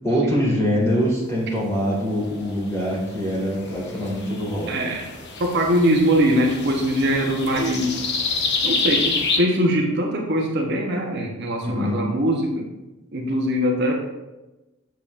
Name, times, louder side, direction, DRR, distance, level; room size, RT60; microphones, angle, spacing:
voice 1, 0.0-4.7 11.6-11.9, equal, 15° left, -4 dB, 2.1 m, -23 dB
sound 1, 2.6-9.4, left 4 dB, 50° left, 0.9 m, -28 dB
voice 2, 4.7-5.1 5.4-8.0 8.6-12.7 13.1-13.9, equal, 50° right, 0 dB, 0.9 m, -22 dB
7.4 x 7.0 x 2.5 m, 1.0 s
head